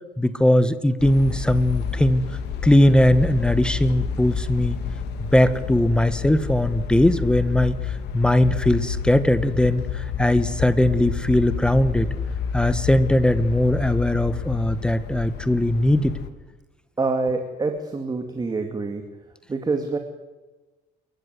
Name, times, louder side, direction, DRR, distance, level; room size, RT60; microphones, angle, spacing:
voice 1, 0.2-2.2 2.6-4.8 5.2-12.1 12.5-16.2, left 1 dB, 5° left, 12 dB, 1.4 m, -20 dB
sound 1, 1.0-16.3, left 7 dB, 85° left, 2.4 m, -29 dB
voice 2, 17.0-19.1 19.5-20.0, right 3 dB, 25° right, 5 dB, 2.3 m, -26 dB
28.0 x 14.5 x 9.6 m, 1.2 s
cardioid pair, 110°, 17 cm